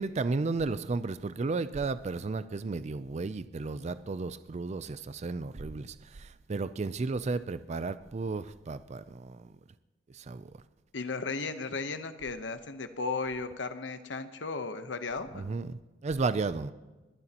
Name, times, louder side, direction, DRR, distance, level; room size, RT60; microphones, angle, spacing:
voice 1, 0.0-9.5 10.1-10.5 15.3-16.7, right 3 dB, 35° right, 14 dB, 0.4 m, -33 dB
voice 2, 10.9-15.5, left 4 dB, 75° left, 9 dB, 0.9 m, -35 dB
22.0 x 11.0 x 2.9 m, 1.1 s
head